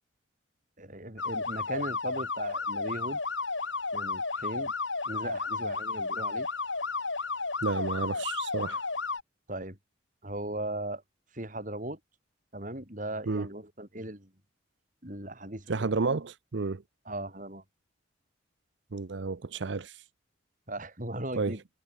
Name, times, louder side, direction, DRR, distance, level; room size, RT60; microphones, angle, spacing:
voice 1, 0.8-3.2 3.9-4.7 5.1-6.5 9.5-9.8 10.2-11.0 11.3-12.0 12.5-14.3 15.0-15.9 17.1-17.6 20.7-21.6, right 1 dB, 40° right, 8.0 m, -38 dB
sound 1, 1.2-9.2, left 4 dB, 75° left, 4.9 m, -33 dB
voice 2, 7.6-8.8 13.3-13.5 15.7-16.8 18.9-20.0 21.3-21.6, right 4 dB, 65° right, 0.7 m, -31 dB
head